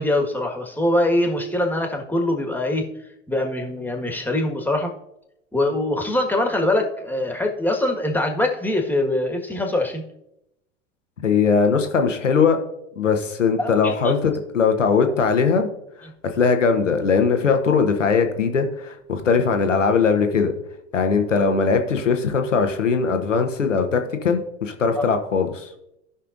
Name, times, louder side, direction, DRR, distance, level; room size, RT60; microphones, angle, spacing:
voice 1, 0.0-2.9 3.3-4.9 5.5-10.0 13.6-14.1 25.0-25.1, left 1 dB, 5° left, 2 dB, 1.7 m, -23 dB
voice 2, 11.2-12.6 13.0-15.7 16.0-20.5 20.9-25.7, left 5 dB, 90° left, 6 dB, 1.1 m, -20 dB
16.5 x 5.6 x 2.6 m, 0.82 s
hypercardioid pair, 85°, 36 cm